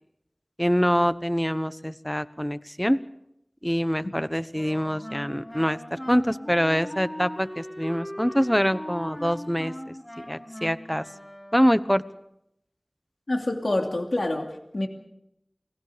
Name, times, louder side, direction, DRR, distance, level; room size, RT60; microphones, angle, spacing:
voice 1, 0.6-3.0 3.6-9.7 10.3-11.0 11.5-12.0, equal, 5° left, 13 dB, 1.1 m, -25 dB
Wind instrument woodwind instrument, 4.5-11.9, equal, 25° left, 5.4 m, -39 dB
voice 2, 13.3-14.9, left 1 dB, 85° left, 2 dB, 2.7 m, -27 dB
28.5 x 20.5 x 5.1 m, 0.80 s
wide cardioid pair, 45°, 0 cm